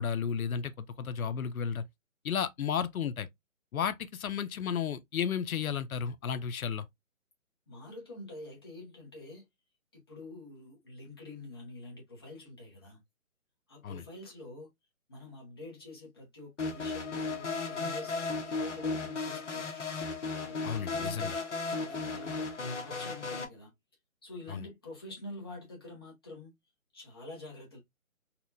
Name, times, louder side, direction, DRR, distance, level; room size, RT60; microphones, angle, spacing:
voice 1, 0.0-1.8 2.2-3.3 3.7-6.9 13.8-14.0 20.6-21.4 24.5-24.6, left 7 dB, 85° left, 0.6 m, -33 dB
voice 2, 7.7-9.5 9.9-13.0 13.7-14.7 15.1-18.1 18.5-19.8 20.5-23.7 24.2-26.5 26.9-27.8, left 2 dB, 20° left, 0.7 m, -47 dB
sound 1, 16.6-23.4, left 3 dB, 60° left, 1.1 m, -35 dB
4.2 x 2.2 x 2.5 m
hypercardioid pair, 165°, 41 cm